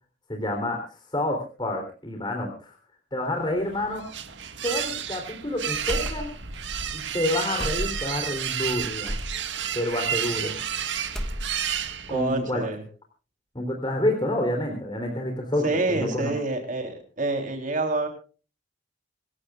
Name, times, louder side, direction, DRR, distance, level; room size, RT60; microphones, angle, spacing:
voice 1, 0.3-2.8 3.1-4.0 4.6-6.3 6.9-9.2 9.7-10.5 12.1-12.6 13.6-16.3, left 1 dB, 25° left, 3 dB, 3.5 m, -28 dB
sound 1, 3.5-12.4, right 9 dB, 75° right, 1.9 m, -31 dB
sound 2, 5.9-6.6 6.8-7.0 7.6-8.2 9.1-9.4 10.2-10.8 11.0-11.8, equal, 5° left, 1.7 m, -32 dB
voice 2, 12.1-12.8 15.6-18.1, right 2 dB, 45° right, 4 dB, 3.5 m, -27 dB
27.0 x 15.0 x 2.4 m, 0.37 s
head